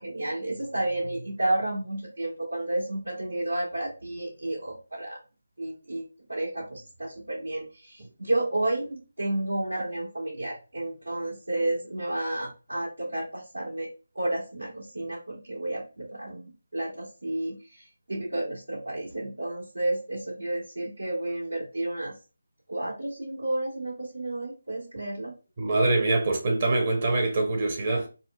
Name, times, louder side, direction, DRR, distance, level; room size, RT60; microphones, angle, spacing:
voice 1, 0.0-5.2 5.6-13.9 14.1-22.1 22.7-25.3, right 1 dB, 75° right, 1.7 m, -31 dB
voice 2, 25.6-28.1, right 2 dB, 40° right, 1.1 m, -24 dB
4.1 x 2.1 x 2.4 m
figure-of-eight pair, 155°, 0 cm